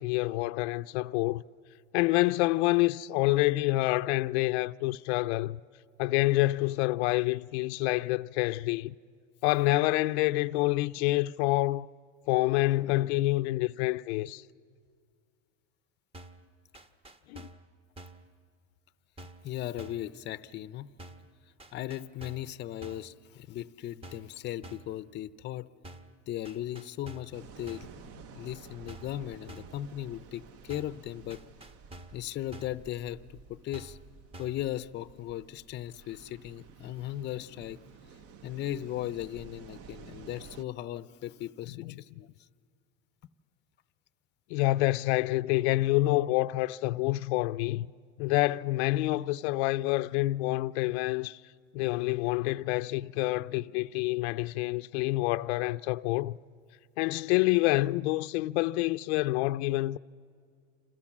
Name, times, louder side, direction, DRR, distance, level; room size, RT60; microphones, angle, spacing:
voice 1, 0.0-1.4 1.9-5.6 6.0-8.9 9.4-11.9 12.3-14.4 17.3-17.5 41.8-42.0 44.5-47.9 48.2-51.4 51.7-56.4 57.0-60.0, left 18 dB, 85° left, 0.6 m, -27 dB
sound 1, 16.1-16.5 16.7-17.7 18.0-18.3 19.2-19.5 19.8-20.1 21.0-21.3 21.6-22.5 22.8-23.1 24.0-24.3 24.6-25.0 25.8-26.2 26.4-27.4 27.7-28.0 28.9-29.2 29.5-29.8 30.7-31.0 31.3-32.2 32.5-32.8 33.7-34.1 34.3-34.7, right 1 dB, 20° right, 1.1 m, -48 dB
voice 2, 19.4-20.9 21.7-25.7 26.3-31.4 32.1-33.2 33.5-34.0 34.4-37.8 38.4-42.3, left 13 dB, 35° left, 0.6 m, -37 dB
sound 2, 27.3-40.6, right 6 dB, 45° right, 0.9 m, -52 dB
27.5 x 27.0 x 7.3 m
cardioid pair, 145°, 33 cm